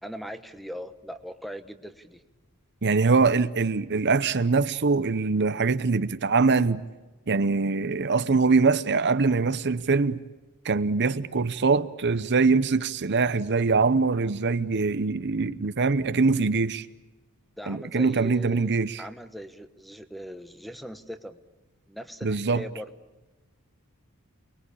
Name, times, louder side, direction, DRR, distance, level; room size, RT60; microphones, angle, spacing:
voice 1, 0.0-2.2 17.6-18.7 19.0-21.4 21.9-22.9, equal, ahead, 1.1 m, -39 dB
voice 2, 2.8-6.8 7.3-10.2 10.6-16.9 17.7-19.0 22.2-22.6, right 4 dB, 50° right, 0.8 m, -23 dB
29.0 x 20.5 x 8.6 m
head